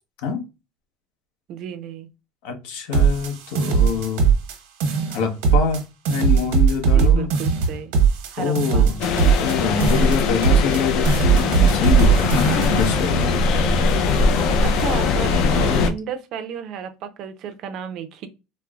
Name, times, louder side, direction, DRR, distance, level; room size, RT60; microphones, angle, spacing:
voice 1, 1.5-2.1 6.8-7.9 8.3-8.9 13.6-13.8 14.6-18.3, right 8 dB, 50° right, 0.5 m, -33 dB
voice 2, 2.4-4.3 5.1-7.3 8.4-9.0 9.4-13.5, left 6 dB, 80° left, 0.8 m, -25 dB
sound 1, 2.9-4.6 4.8-5.8 6.1-9.6 9.8-10.8 11.1-12.9, right 6 dB, 90° right, 1.0 m, -19 dB
sound 2, 9.0-15.9, left 4 dB, 55° left, 0.5 m, -20 dB
4.2 x 2.1 x 2.3 m
cardioid pair, 155°, 0 cm